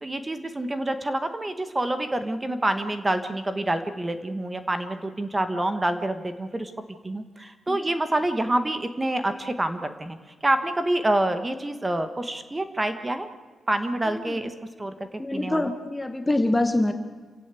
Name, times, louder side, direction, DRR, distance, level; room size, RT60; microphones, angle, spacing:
voice 1, 0.0-6.7 7.0-10.2 10.4-13.3 13.7-14.5 14.8-14.9 15.3-15.7, right 1 dB, 15° right, 9 dB, 1.4 m, -27 dB
voice 2, 15.2-16.9, left 1 dB, 10° left, 6 dB, 1.1 m, -25 dB
28.0 x 16.5 x 8.3 m, 1.5 s
wide cardioid pair, 170°, 0 cm